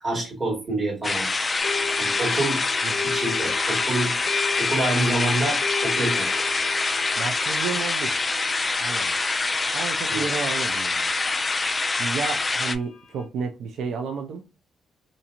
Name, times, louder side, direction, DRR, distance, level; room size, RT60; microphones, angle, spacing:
voice 1, 0.0-1.3 2.0-2.6 3.0-4.1 4.6-6.3 10.1-10.2, right 2 dB, 35° right, 1.5 m, -27 dB
sound 1, 1.0-12.8, left 3 dB, 25° left, 0.3 m, -25 dB
sound 2, 1.6-13.2, left 6 dB, 65° left, 0.7 m, -34 dB
voice 2, 7.2-8.1 8.8-9.1 9.7-11.1 12.0-14.4, right 5 dB, 75° right, 0.4 m, -31 dB
2.8 x 2.6 x 2.4 m
cardioid pair, 90°, 0 cm